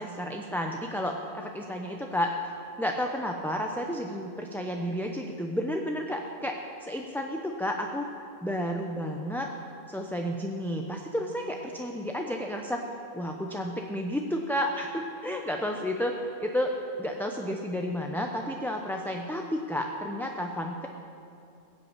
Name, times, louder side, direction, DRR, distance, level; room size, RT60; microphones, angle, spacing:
voice 1, 0.0-2.3 2.8-8.1 8.4-9.5 9.9-12.8 13.1-20.9, equal, ahead, 2 dB, 0.7 m, -31 dB
16.5 x 8.3 x 7.4 m, 2.6 s
omnidirectional pair, 1.1 m